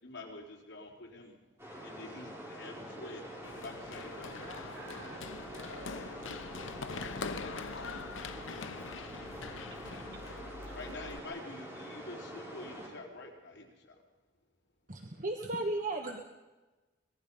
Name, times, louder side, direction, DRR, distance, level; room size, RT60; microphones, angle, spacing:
voice 1, 0.0-1.4 1.8-4.4 10.7-13.9, left 2 dB, 65° left, 0 dB, 4.0 m, -47 dB
sound 1, 1.6-12.9, equal, 15° right, 5.7 m, -46 dB
Run, 3.4-11.2, left 4 dB, 80° left, 0.9 m, -43 dB
voice 2, 4.4-6.7 9.6-10.2 15.8-15.9, right 2 dB, 65° right, 0 dB, 6.8 m, -52 dB
voice 3, 14.9-16.2, right 2 dB, 45° right, 4 dB, 1.4 m, -35 dB
25.0 x 20.0 x 5.5 m, 1.2 s
head